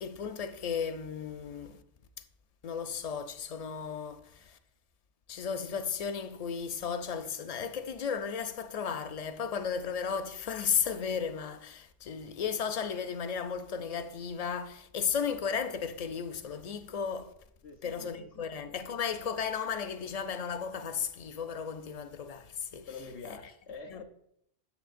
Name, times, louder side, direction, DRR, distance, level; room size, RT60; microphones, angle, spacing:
voice 1, 0.0-1.8 2.2-2.3 2.6-4.6 5.3-17.3 17.8-22.9 23.9-24.0, left 7 dB, 55° left, 0.4 m, -34 dB
voice 2, 17.6-18.5 22.9-24.0, left 4 dB, 85° left, 1.0 m, -46 dB
8.2 x 7.0 x 2.5 m
omnidirectional pair, 1.1 m